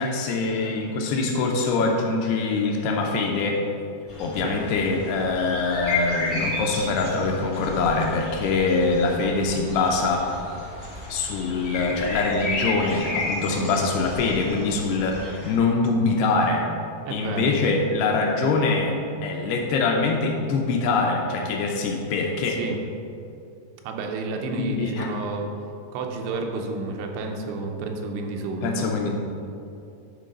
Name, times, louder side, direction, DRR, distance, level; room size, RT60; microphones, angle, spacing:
voice 1, 0.0-3.6 4.2-10.3 11.1-16.7 17.1-19.0 19.2-22.6 24.6-25.1 28.6-29.1, left 3 dB, 80° left, 1 dB, 2.5 m, -24 dB
sound 1, 4.1-15.5, left 2 dB, 60° left, 0.8 m, -33 dB
voice 2, 17.0-17.7 22.5-22.8 23.8-25.5 25.9-28.9, right 3 dB, 85° right, 3 dB, 2.9 m, -30 dB
10.5 x 3.8 x 5.1 m, 2.6 s
omnidirectional pair, 4.9 m